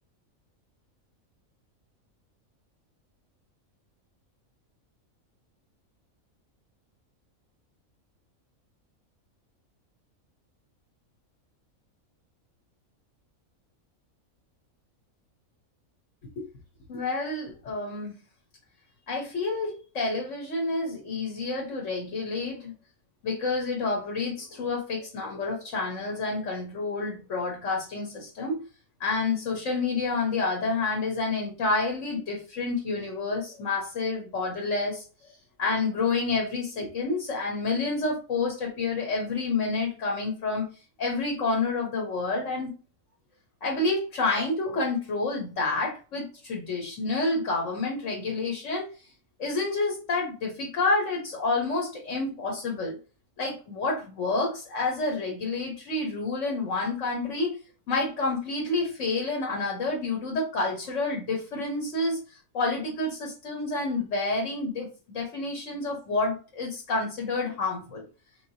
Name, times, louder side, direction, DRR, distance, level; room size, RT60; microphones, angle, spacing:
voice 1, 16.9-18.1 19.1-22.7 23.2-28.6 29.0-35.0 35.6-40.7 41.0-42.7 43.6-48.9 49.4-53.0 53.4-57.6 57.9-62.2 62.5-68.0, left 3 dB, 60° left, 0 dB, 1.4 m, -29 dB
5.3 x 3.2 x 2.8 m, 0.35 s
omnidirectional pair, 1.5 m